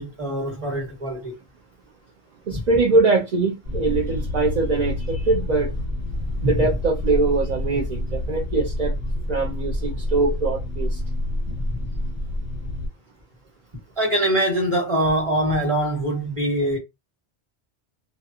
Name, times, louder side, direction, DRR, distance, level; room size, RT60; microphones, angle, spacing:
voice 1, 0.0-1.3 11.7-11.9 14.0-16.8, right 1 dB, 30° right, 1.1 m, -23 dB
voice 2, 2.5-5.7 6.4-9.0 9.3-11.0, right 3 dB, 50° right, 0.6 m, -22 dB
sound 1, 3.6-12.9, left 1 dB, 80° right, 1.2 m, -28 dB
2.4 x 2.2 x 2.7 m
omnidirectional pair, 1.2 m